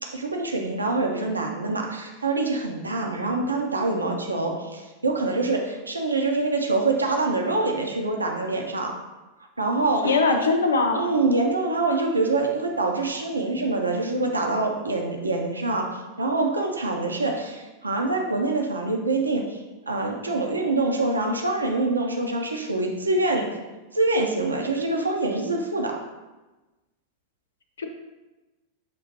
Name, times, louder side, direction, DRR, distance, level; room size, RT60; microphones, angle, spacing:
voice 1, 0.0-8.9 9.6-10.1 10.9-19.6 19.9-23.5 23.9-26.0, right 2 dB, 80° right, 1 dB, 0.5 m, -25 dB
voice 2, 10.0-11.1 27.8-27.9, left 3 dB, 70° left, 5 dB, 0.5 m, -21 dB
6.7 x 2.8 x 2.8 m, 1.1 s
figure-of-eight pair, 90°, 0 cm